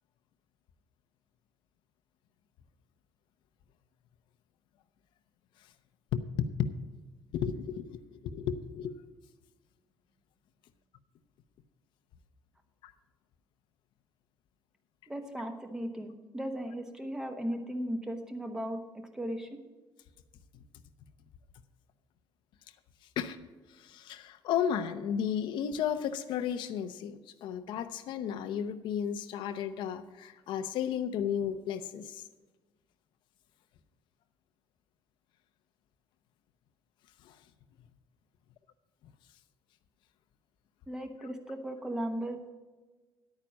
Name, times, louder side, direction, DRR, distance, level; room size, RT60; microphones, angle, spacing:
voice 1, 6.1-6.7 7.3-8.9 12.8-12.9 23.2-23.4 23.8-32.2 37.2-37.4, left 8 dB, 75° left, 9 dB, 0.8 m, -33 dB
voice 2, 15.1-18.8 19.1-19.6 40.9-42.4, equal, 5° right, 6 dB, 1.0 m, -36 dB
10.5 x 9.0 x 5.3 m, 1.3 s
cardioid pair, 170°, 8 cm